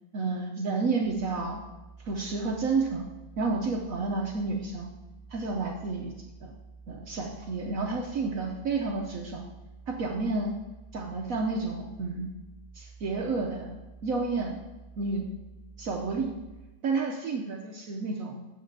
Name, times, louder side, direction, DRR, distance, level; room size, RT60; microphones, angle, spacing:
voice 1, 0.1-1.6 2.0-3.0 3.4-4.9 5.3-6.1 6.4-6.5 6.9-9.4 9.9-10.5 10.9-12.3 12.7-13.7 14.0-14.6 15.0-15.3 15.8-16.3 16.8-18.4, right 3 dB, 65° right, 1 dB, 0.8 m, -30 dB
sound 1, 1.0-16.6, right 4 dB, 80° left, 1.7 m, -50 dB
8.1 x 3.8 x 6.5 m, 1.1 s
omnidirectional pair, 2.2 m